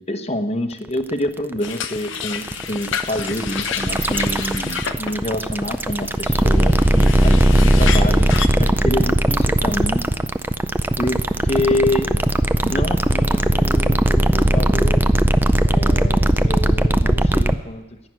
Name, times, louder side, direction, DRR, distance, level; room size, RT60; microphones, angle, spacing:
voice 1, 0.0-8.3 8.6-10.0 11.0-12.3 12.6-15.1 15.6-18.1, left 1 dB, 30° left, 7 dB, 1.0 m, -27 dB
sound 1, 0.9-17.5, right 1 dB, 10° right, 0.4 m, -18 dB
sound 2, 1.6-8.5, left 8 dB, 65° left, 0.8 m, -30 dB
11.0 x 9.8 x 8.8 m, 1.1 s
head